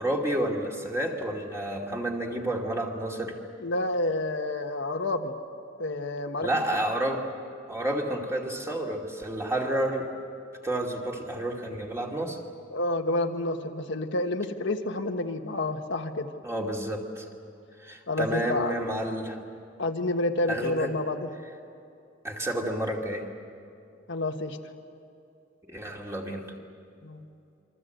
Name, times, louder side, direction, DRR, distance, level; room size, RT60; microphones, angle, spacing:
voice 1, 0.0-3.4 6.4-7.3 7.7-10.1 10.6-12.4 16.4-17.3 17.8-19.4 20.5-20.9 22.2-23.3 25.7-26.5, right 1 dB, 15° right, 0 dB, 2.7 m, -30 dB
voice 2, 3.6-5.3 5.8-6.5 12.7-16.3 18.1-18.7 19.8-21.3 24.1-24.6 27.0-27.3, left 2 dB, 65° left, 4 dB, 1.5 m, -29 dB
28.0 x 24.5 x 8.0 m, 2.6 s
head